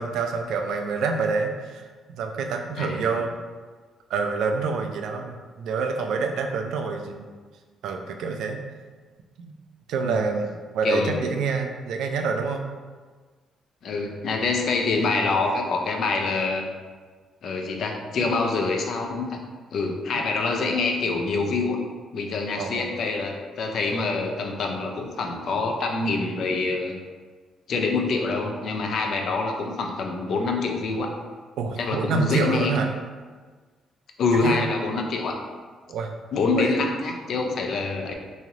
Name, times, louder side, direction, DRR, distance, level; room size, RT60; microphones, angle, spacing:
voice 1, 0.0-1.8 2.1-3.3 4.1-7.3 7.8-8.6 9.4-9.5 9.9-10.5 10.7-12.6 22.6-23.0 31.6-32.9 34.3-34.6 35.9-36.1 36.5-36.7, right 4 dB, 80° right, 4 dB, 0.3 m, -27 dB
voice 2, 2.8-3.1 10.0-10.3 10.8-11.2 13.8-16.7 17.4-19.4 19.7-21.8 22.1-27.0 27.7-31.1 31.8-32.8 34.2-35.4 36.3-38.2, left 3 dB, 65° left, 2 dB, 0.4 m, -26 dB
3.1 x 2.7 x 2.4 m, 1.4 s
cardioid pair, 90°, 0 cm